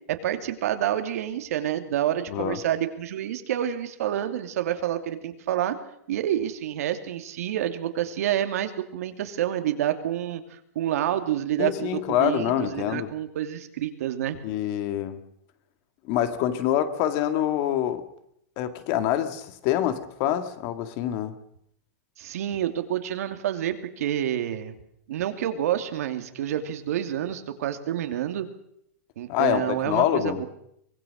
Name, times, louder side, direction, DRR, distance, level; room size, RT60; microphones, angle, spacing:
voice 1, 0.1-5.8 6.1-14.4 22.2-24.8 25.1-28.5 29.2-30.5, right 11 dB, 70° right, 7 dB, 2.8 m, -28 dB
voice 2, 2.3-2.6 11.6-13.1 14.4-15.2 16.1-18.1 18.6-21.4 29.3-30.4, left 11 dB, 40° left, 10 dB, 2.0 m, -26 dB
24.5 x 20.0 x 6.5 m, 0.72 s
supercardioid pair, 160°, 8 cm